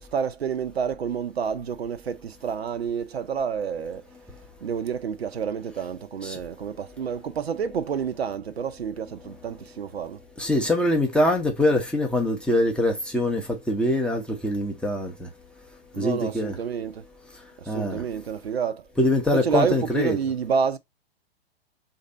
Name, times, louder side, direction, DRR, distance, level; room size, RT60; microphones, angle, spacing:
voice 1, 0.1-4.0 4.6-10.2 15.9-17.0 17.6-18.8 19.3-20.8, right 7 dB, 80° right, 0.6 m, -29 dB
voice 2, 10.4-15.3 16.0-16.6 17.7-18.0 19.0-20.2, left 1 dB, 5° left, 0.5 m, -23 dB
3.2 x 2.7 x 3.8 m
figure-of-eight pair, 110°, 31 cm